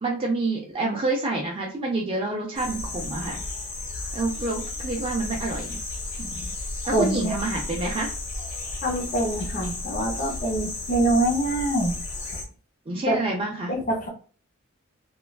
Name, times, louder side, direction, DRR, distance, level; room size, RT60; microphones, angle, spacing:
voice 1, 0.0-3.4 4.1-5.8 6.2-6.5 6.9-8.1 12.9-13.7, right 2 dB, 25° right, -1 dB, 0.4 m, -28 dB
sound 1, 2.5-12.4, left 2 dB, 60° left, 1.1 m, -33 dB
voice 2, 6.9-7.3 8.8-11.9 13.1-13.2 13.7-14.1, right 1 dB, 40° left, 1 dB, 0.6 m, -24 dB
3.0 x 2.2 x 2.3 m, 0.40 s
head